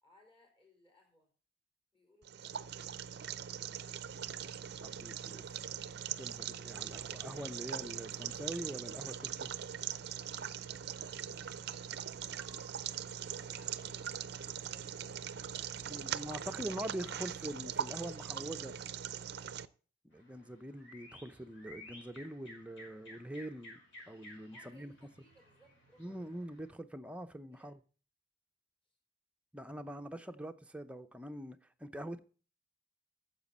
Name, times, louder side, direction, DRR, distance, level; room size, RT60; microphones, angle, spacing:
voice 1, 0.0-1.3 1.9-3.0 10.6-15.3 15.7-16.7 17.9-18.3 24.3-26.3 27.4-27.7 28.8-29.0 30.2-30.3, equal, 25° left, 4.3 m, -67 dB
sound 1, 2.2-19.7, right 9 dB, 50° right, 0.5 m, -41 dB
voice 2, 4.4-5.4 6.2-9.5 15.6-18.7 20.0-23.8 24.1-24.9 26.0-27.8 29.5-32.2, right 1 dB, 5° right, 0.6 m, -44 dB
sound 2, 6.7-17.6, left 1 dB, 80° left, 2.4 m, -64 dB
sound 3, 20.1-26.7, left 1 dB, 65° left, 5.2 m, -55 dB
9.4 x 7.4 x 7.2 m
head